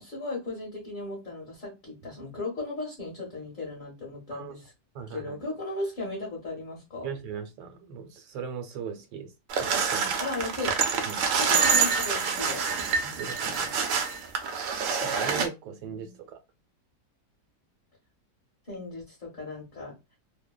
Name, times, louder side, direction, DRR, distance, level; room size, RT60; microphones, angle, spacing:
voice 1, 0.0-4.7 5.1-7.1 10.2-10.7 11.4-12.6 15.8-16.2 18.7-19.9, left 2 dB, 40° left, 0.8 m, -36 dB
voice 2, 4.9-5.4 7.0-9.3 9.6-10.2 11.1-11.3 13.0-13.7 15.0-16.4, right 6 dB, 90° right, 1.2 m, -38 dB
sound 1, 9.5-15.5, right 6 dB, 70° right, 0.7 m, -26 dB
2.7 x 2.1 x 2.2 m
omnidirectional pair, 1.8 m